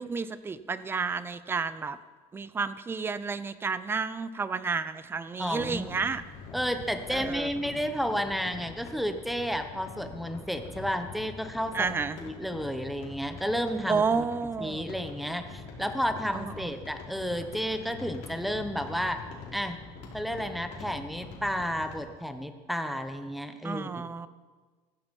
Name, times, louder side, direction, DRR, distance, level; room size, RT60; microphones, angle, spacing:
voice 1, 0.0-2.0 2.3-6.2 7.1-7.5 11.7-12.2 13.9-14.9 16.3-16.7 23.6-24.3, right 5 dB, 15° right, 15 dB, 0.5 m, -31 dB
sound 1, 5.4-22.1, left 4 dB, 70° left, 4.3 m, -44 dB
voice 2, 5.4-6.1 6.5-14.0 14.6-19.2 19.5-19.8 20.1-23.9, equal, ahead, 8 dB, 1.0 m, -32 dB
15.5 x 14.5 x 5.4 m, 1.4 s
cardioid pair, 155°, 14 cm